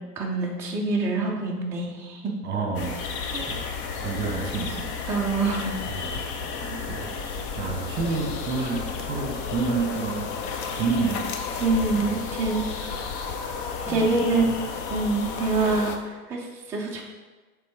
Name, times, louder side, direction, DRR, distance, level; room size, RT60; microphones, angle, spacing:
voice 1, 0.2-2.2 3.3-3.6 5.1-5.7 6.6-7.1 11.6-12.9 13.9-14.5 14.9-17.0, right 3 dB, 5° right, -3 dB, 0.4 m, -26 dB
voice 2, 2.4-3.0 3.5-3.6 4.0-4.9 5.9-6.5 6.9-7.0 7.6-10.3 10.7-11.2 11.9-12.1 13.9-14.1 14.4-14.6, right 4 dB, 25° right, 1 dB, 1.4 m, -29 dB
sound 1, 2.8-16.0, left 5 dB, 35° left, 0.7 m, -32 dB
6.7 x 3.8 x 4.7 m, 1.3 s
figure-of-eight pair, 100°, 47 cm